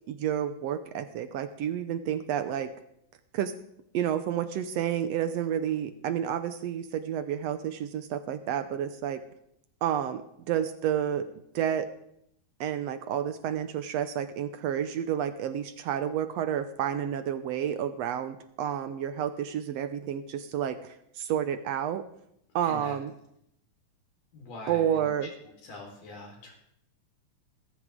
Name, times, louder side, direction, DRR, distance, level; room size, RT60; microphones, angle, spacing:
voice 1, 0.1-2.7 3.3-3.5 3.9-9.2 9.8-10.2 10.5-11.3 11.5-11.9 12.6-22.0 22.5-23.1 24.7-25.3, right 9 dB, 80° right, 10 dB, 1.5 m, -30 dB
voice 2, 22.6-22.9 24.3-25.3 25.6-26.5, left 2 dB, 85° left, 0 dB, 5.9 m, -43 dB
20.0 x 13.5 x 3.7 m, 0.75 s
omnidirectional pair, 3.7 m